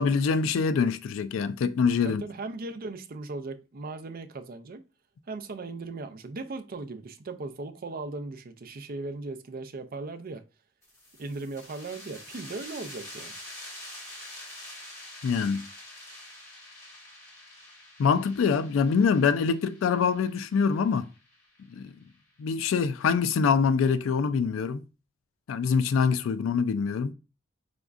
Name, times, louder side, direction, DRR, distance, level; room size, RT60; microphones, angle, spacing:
voice 1, 0.0-2.2 15.2-15.7 18.0-21.1 21.8-21.9 22.4-24.8 25.5-27.1, left 5 dB, 85° left, 0.3 m, -24 dB
voice 2, 2.0-4.8 5.3-10.4 11.2-13.3, right 3 dB, 50° right, 0.5 m, -38 dB
sound 1, 10.8-22.1, left 1 dB, 15° left, 2.4 m, -46 dB
5.1 x 3.5 x 2.4 m
head